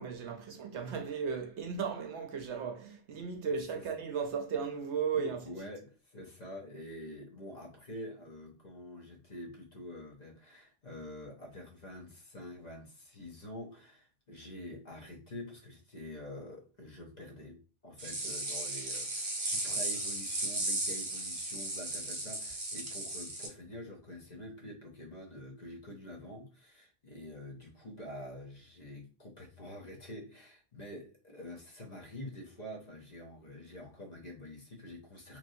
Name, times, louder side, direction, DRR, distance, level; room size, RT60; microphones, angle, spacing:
voice 1, 0.0-5.5, right 6 dB, 70° right, 0.8 m, -35 dB
voice 2, 5.1-35.4, left 1 dB, 45° left, 0.7 m, -47 dB
sound 1, 18.0-23.5, right 2 dB, 35° right, 0.7 m, -35 dB
3.0 x 2.5 x 2.6 m
omnidirectional pair, 1.3 m